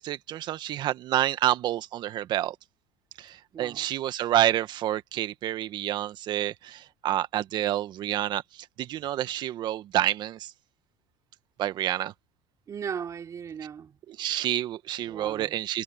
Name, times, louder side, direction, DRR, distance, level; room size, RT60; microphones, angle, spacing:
voice 1, 0.0-2.5 3.2-10.5 11.6-12.1 14.1-15.8, right 13 dB, 55° right, 1.6 m, -28 dB
voice 2, 3.5-3.9 12.7-14.0 15.0-15.6, right 7 dB, 35° right, 3.9 m, -37 dB
supercardioid pair, 100°, 9 cm